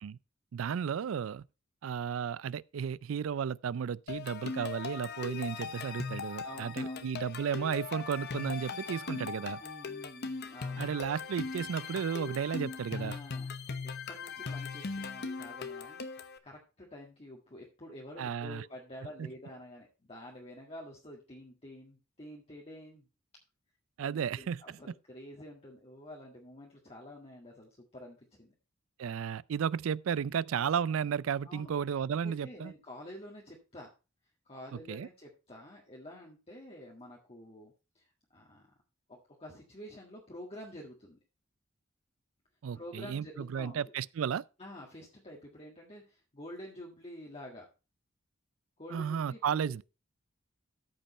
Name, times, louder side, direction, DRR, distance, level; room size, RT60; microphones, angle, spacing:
voice 1, 0.5-1.4 1.8-9.6 10.8-13.2 18.2-18.6 24.0-24.8 29.0-32.7 34.9-35.1 42.6-44.4 48.9-49.8, right 7 dB, 75° right, 0.4 m, -33 dB
sound 1, 4.1-16.4, left 5 dB, 55° left, 0.9 m, -39 dB
voice 2, 6.4-7.0 9.6-10.8 12.9-16.0 16.4-23.1 24.0-28.5 31.4-31.7 32.2-33.9 34.4-38.7 39.1-41.2 42.7-43.8 44.6-47.7 48.8-49.8, left 1 dB, 30° left, 1.8 m, -49 dB
13.5 x 5.4 x 4.2 m
head